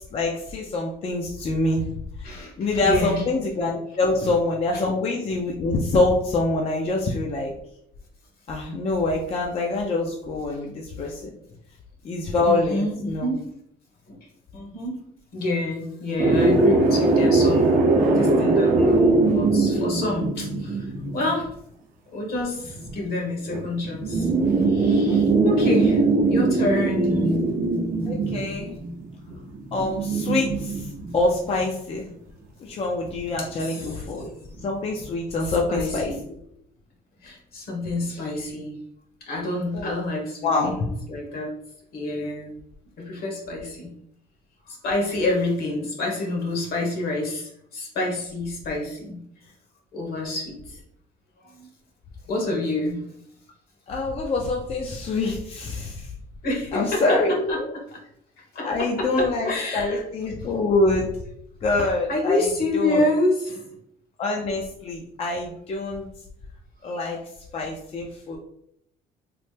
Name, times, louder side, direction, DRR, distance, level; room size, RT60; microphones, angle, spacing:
voice 1, 0.1-1.9 2.2-7.5 8.5-11.3 12.0-13.3 28.1-28.8 29.7-30.9 31.1-32.1 32.6-34.3 34.6-36.1 39.7-40.0 40.4-40.9 53.9-56.1 56.7-57.7 58.6-61.1 61.6-62.5 62.7-63.0 64.2-66.0 66.8-67.2 67.5-68.4, left 2 dB, 35° left, -1 dB, 0.4 m, -25 dB
voice 2, 2.2-3.2 4.2-4.3 4.7-4.8 11.0-11.1 12.4-13.5 14.1-14.2 14.5-15.0 15.3-21.5 22.1-24.3 24.7-26.0 26.3-27.4 33.5-34.0 35.4-36.2 37.2-38.8 39.3-41.5 41.9-42.5 43.0-43.9 44.7-49.2 49.9-50.8 51.4-51.7 52.3-53.0 56.4-57.2 57.5-57.6 57.9-58.0 58.4-60.0 62.1-63.7, left 2 dB, 65° left, -1 dB, 1.2 m, -28 dB
sound 1, 16.2-21.4 22.6-23.0 23.5-31.6 33.4-34.2 34.6-34.7 35.0-35.1, right 3 dB, 55° right, 0.6 m, -21 dB
3.1 x 2.1 x 3.2 m, 0.74 s
cardioid pair, 110°, 17 cm